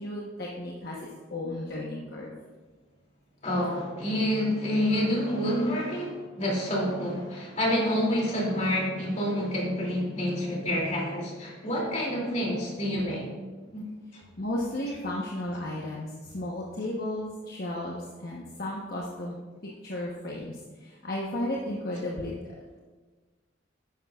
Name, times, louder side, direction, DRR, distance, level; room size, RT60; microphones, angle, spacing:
voice 1, 0.0-2.4 10.8-10.9 14.4-19.4 19.6-22.3, left 1 dB, 55° left, -3 dB, 1.1 m, -34 dB
voice 2, 3.4-13.3 13.7-13.8 14.1-14.2, equal, 40° left, -3 dB, 2.7 m, -28 dB
11.5 x 9.4 x 2.4 m, 1.4 s
head